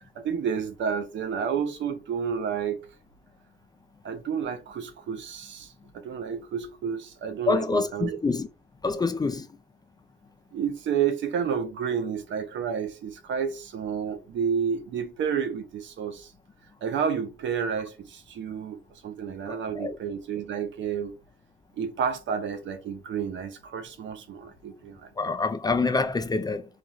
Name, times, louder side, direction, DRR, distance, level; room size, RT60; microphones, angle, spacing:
voice 1, 0.2-2.8 4.0-8.2 10.5-16.3 16.8-21.1 21.8-25.1, right 7 dB, 70° right, 0.7 m, -30 dB
voice 2, 7.5-8.5 8.8-9.5 19.5-20.0 25.2-26.7, left 3 dB, 20° left, 0.4 m, -26 dB
4.1 x 2.3 x 3.0 m
cardioid pair, 90°, 20 cm